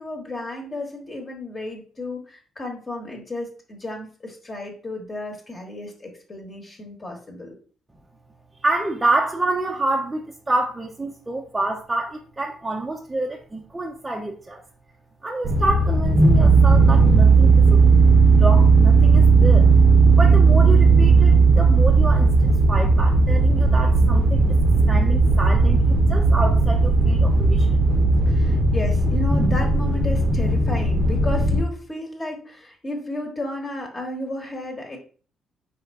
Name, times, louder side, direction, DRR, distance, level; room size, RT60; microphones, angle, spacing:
voice 1, 0.0-7.6 28.3-35.0, left 1 dB, 30° left, 2 dB, 1.2 m, -33 dB
voice 2, 8.6-14.6 15.2-17.8 18.4-19.7 20.2-24.4 24.9-27.8, right 2 dB, 20° right, 0 dB, 0.6 m, -27 dB
sound 1, 15.4-31.6, right 4 dB, 50° right, 0.7 m, -16 dB
4.2 x 3.4 x 3.5 m, 0.42 s
cardioid pair, 90°, 0 cm